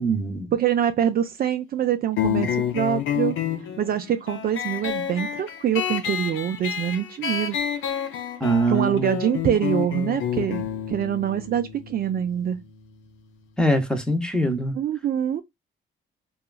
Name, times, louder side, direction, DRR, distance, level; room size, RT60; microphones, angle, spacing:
voice 1, 0.0-0.5 8.4-9.2 13.6-14.8, right 1 dB, 5° left, 0.7 m, -23 dB
voice 2, 0.5-3.4 3.8-7.6 8.7-12.6 14.7-15.4, right 9 dB, 50° right, 0.4 m, -25 dB
sound 1, 2.2-13.3, left 9 dB, 80° left, 0.7 m, -29 dB
2.9 x 2.4 x 2.2 m
cardioid pair, 90°, 20 cm